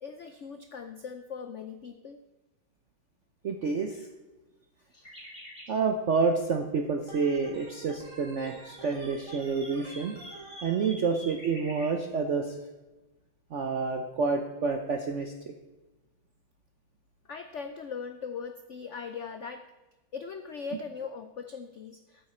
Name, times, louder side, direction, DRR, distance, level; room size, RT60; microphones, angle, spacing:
voice 1, 0.0-2.2 17.3-19.6 20.1-22.3, left 5 dB, 80° left, 8 dB, 0.6 m, -40 dB
voice 2, 3.4-4.1 5.7-10.2 10.6-12.6 13.5-15.3, right 4 dB, 60° right, 5 dB, 0.8 m, -28 dB
sound 1, 4.9-5.7 8.1-11.9, equal, 30° left, 3.1 m, -47 dB
Organ, 7.1-10.8, right 2 dB, 45° right, 2.6 m, -48 dB
13.5 x 8.2 x 4.3 m, 1.1 s
omnidirectional pair, 2.1 m